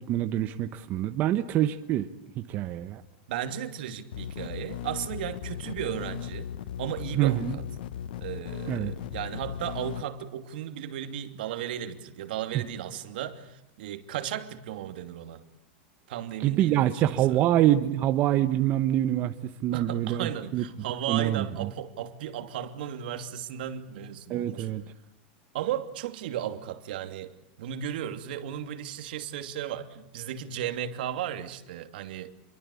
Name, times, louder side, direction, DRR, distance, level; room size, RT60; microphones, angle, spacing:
voice 1, 0.0-2.1 2.3-3.0 7.1-7.6 8.7-8.9 12.5-12.6 16.4-20.6 21.1-21.7 24.3-24.8, right 13 dB, 35° right, 1.2 m, -25 dB
voice 2, 3.3-6.5 6.8-7.6 8.2-15.4 16.1-17.4 19.7-24.7 25.5-32.3, right 10 dB, 75° right, 2.8 m, -35 dB
sound 1, 4.1-10.0, left 10 dB, 75° left, 1.1 m, -37 dB
29.0 x 23.0 x 8.5 m
supercardioid pair, 155°, 5 cm